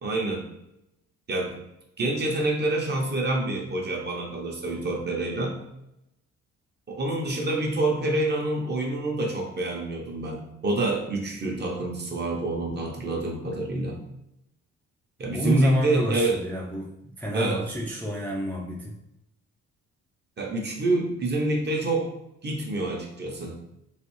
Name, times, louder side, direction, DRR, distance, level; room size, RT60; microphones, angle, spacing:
voice 1, 0.0-0.4 1.3-1.5 2.0-5.6 6.9-14.0 15.2-16.4 17.3-17.6 20.4-22.1 22.4-23.5, right 2 dB, 35° right, 0 dB, 0.8 m, -27 dB
voice 2, 15.3-16.9 17.2-18.9, equal, 5° left, -3 dB, 0.4 m, -28 dB
3.2 x 2.4 x 3.0 m, 0.84 s
cardioid pair, 90°, 30 cm